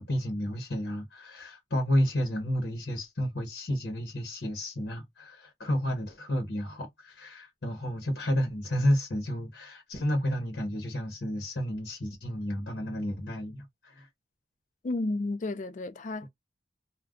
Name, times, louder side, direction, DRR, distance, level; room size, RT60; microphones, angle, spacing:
voice 1, 0.0-14.1, equal, 65° left, 1.0 m, -31 dB
voice 2, 14.8-16.3, left 2 dB, 40° left, 0.4 m, -32 dB
2.3 x 2.2 x 3.6 m
head